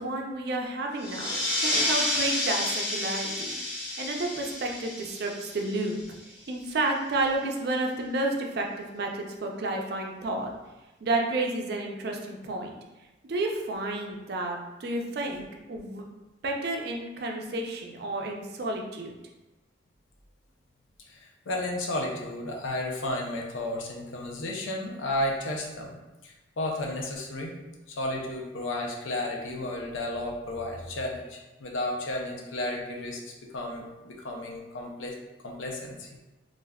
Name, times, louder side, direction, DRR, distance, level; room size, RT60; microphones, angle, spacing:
voice 1, 0.0-1.3 1.6-3.5 4.0-6.0 6.3-10.5 11.0-12.7 13.3-16.1 16.4-19.1, right 2 dB, 55° right, 1 dB, 0.4 m, -31 dB
sound 1, 1.0-6.2, left 1 dB, 20° left, 1.0 m, -30 dB
voice 2, 21.1-26.0 26.2-27.5 27.9-33.2 33.5-35.2 35.4-36.1, left 1 dB, 90° left, 0 dB, 0.5 m, -33 dB
3.4 x 2.5 x 2.2 m, 1.1 s
head